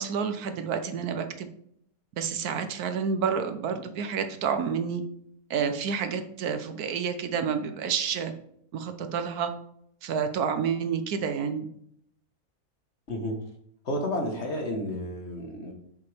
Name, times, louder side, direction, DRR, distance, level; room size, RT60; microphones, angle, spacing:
voice 1, 0.0-1.5 2.2-5.0 5.5-8.3 8.7-9.5 10.0-11.7, right 6 dB, 80° right, 8 dB, 1.3 m, -29 dB
voice 2, 13.8-15.7, left 1 dB, 50° left, 2 dB, 1.7 m, -31 dB
7.0 x 6.7 x 3.5 m, 0.70 s
omnidirectional pair, 1.6 m